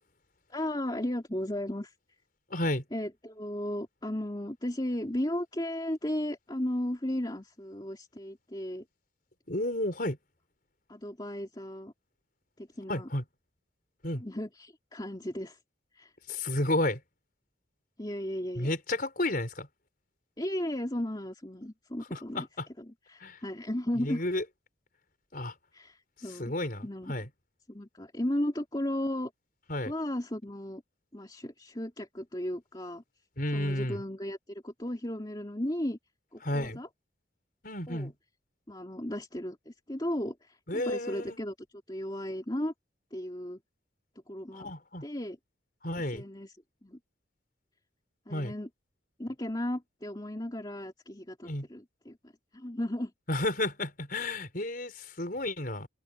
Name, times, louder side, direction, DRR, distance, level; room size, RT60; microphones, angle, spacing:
voice 1, 0.5-1.9 2.9-8.8 10.9-11.9 12.6-13.1 14.2-15.6 15.9-16.1 18.0-18.7 20.4-22.5 22.8-24.2 25.7-26.5 26.8-27.2 27.7-29.3 29.8-30.8 31.1-33.0 33.5-36.0 36.3-36.9 37.9-38.1 38.7-41.5 41.9-42.7 43.1-43.6 44.3-44.7 45.0-45.4 46.1-46.6 46.8-47.0 48.3-48.7 49.2-53.1, left 1 dB, 20° left, 2.8 m, -35 dB
voice 2, 2.5-2.8 9.5-10.2 12.9-13.2 14.0-14.2 16.3-17.0 18.5-19.7 22.1-22.7 23.2-23.4 24.0-24.4 25.3-25.5 26.4-27.3 29.7-29.9 33.4-34.0 36.4-36.8 37.6-38.1 40.7-41.4 44.5-45.0 45.8-46.2 48.3-48.5 51.4-51.7 53.3-55.9, left 1 dB, 45° left, 5.1 m, -32 dB
open air
head